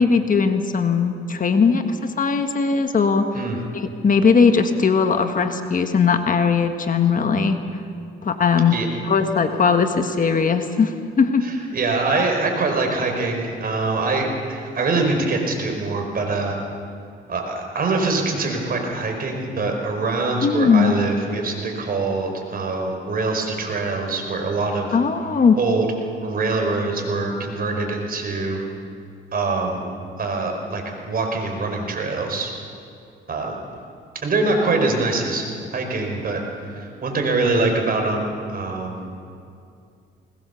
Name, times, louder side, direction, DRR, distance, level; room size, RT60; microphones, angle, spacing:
voice 1, 0.0-3.3 3.7-7.6 8.2-8.8 9.0-11.5 20.4-20.9 24.9-25.6, left 5 dB, 40° left, 7 dB, 1.5 m, -19 dB
voice 2, 11.4-16.6 17.3-24.9 25.6-25.9 26.2-28.6 29.3-29.9 30.2-32.5 33.3-33.6 34.2-35.5 35.7-36.4 36.7-39.0, right 3 dB, 50° right, 2 dB, 4.9 m, -24 dB
21.0 x 20.5 x 7.0 m, 2.4 s
cardioid pair, 90°, 20 cm